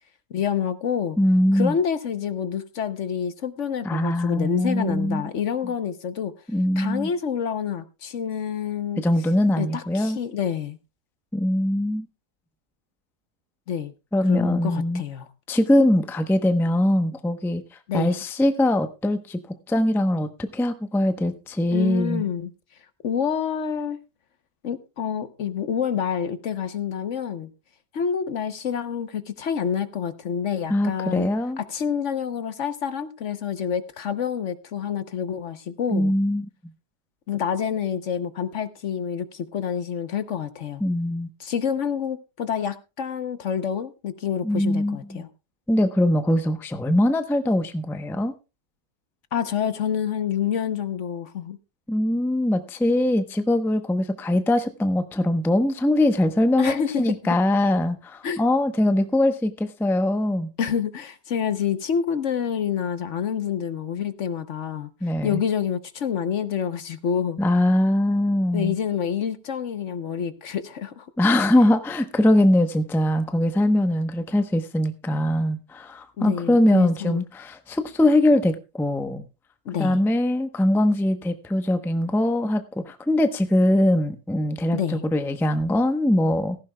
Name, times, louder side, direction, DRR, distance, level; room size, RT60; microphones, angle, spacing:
voice 1, 0.3-1.2 1.5-6.3 6.8-9.0 9.6-10.8 13.7-13.9 14.3-15.3 17.9-18.2 21.7-22.5 23.0-24.0 24.6-27.5 27.9-31.3 31.6-36.1 37.3-40.8 41.4-45.3 49.3-51.6 56.6-57.0 58.2-58.4 60.6-64.9 65.2-67.4 68.5-71.1 76.2-77.2 79.7-80.0 84.7-85.0, left 8 dB, 60° left, 1.1 m, -27 dB
voice 2, 1.2-1.7 3.8-5.3 6.5-7.1 9.0-10.2 11.3-12.1 14.1-15.0 15.5-17.6 17.9-19.4 19.7-22.3 30.7-31.6 35.9-36.5 40.8-41.3 44.4-45.2 45.7-48.3 51.9-60.5 65.0-65.4 67.4-68.8 71.2-79.2 79.8-86.6, left 1 dB, ahead, 0.6 m, -22 dB
16.5 x 14.5 x 2.2 m
omnidirectional pair, 1.5 m